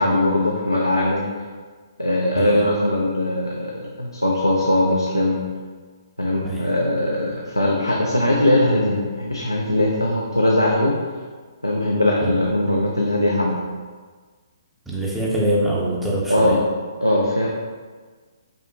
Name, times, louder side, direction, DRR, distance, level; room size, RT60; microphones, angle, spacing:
voice 1, 0.0-1.5 2.0-5.4 6.2-10.9 11.6-13.6 16.3-16.6 17.0-17.5, left 1 dB, 90° left, -2 dB, 0.4 m, -20 dB
voice 2, 14.9-16.6, right 1 dB, 5° right, -5 dB, 0.6 m, -23 dB
5.3 x 2.1 x 2.7 m, 1.5 s
figure-of-eight pair, 130°, 2 cm